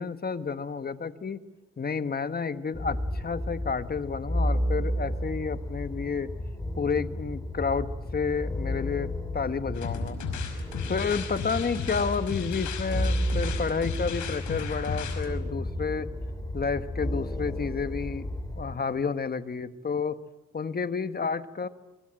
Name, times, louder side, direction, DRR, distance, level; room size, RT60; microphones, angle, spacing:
voice 1, 0.0-1.4 1.8-6.3 6.8-10.2 10.8-16.1 16.5-20.2 20.5-21.7, left 5 dB, 30° left, 11 dB, 1.4 m, -30 dB
sound 1, 2.7-18.7, equal, 10° left, 3.5 m, -32 dB
sound 2, 9.7-15.3, left 6 dB, 75° left, 5.6 m, -35 dB
24.5 x 24.0 x 8.9 m, 1.0 s
cardioid pair, 90°, 30 cm